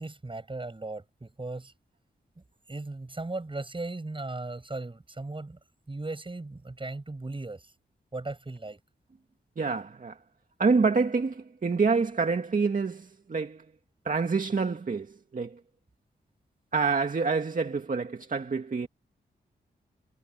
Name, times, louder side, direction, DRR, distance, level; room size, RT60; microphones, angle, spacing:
voice 1, 0.0-1.7 2.7-5.6 5.9-7.7 8.1-8.8, right 2 dB, 30° right, 8.0 m, -37 dB
voice 2, 9.6-10.2 10.6-13.6 14.0-15.6 16.7-18.9, right 4 dB, 45° right, 2.1 m, -27 dB
cardioid pair, 70°, 18 cm